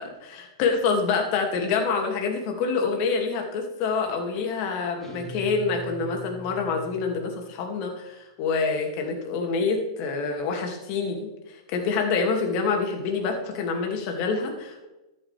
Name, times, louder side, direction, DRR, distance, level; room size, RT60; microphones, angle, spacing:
voice 1, 0.0-14.9, left 4 dB, 45° left, 3 dB, 2.5 m, -27 dB
sound 1, 5.0-7.6, right 1 dB, 15° left, 4.3 m, -41 dB
14.0 x 10.5 x 3.5 m, 1.0 s
hypercardioid pair, 105°, 2 cm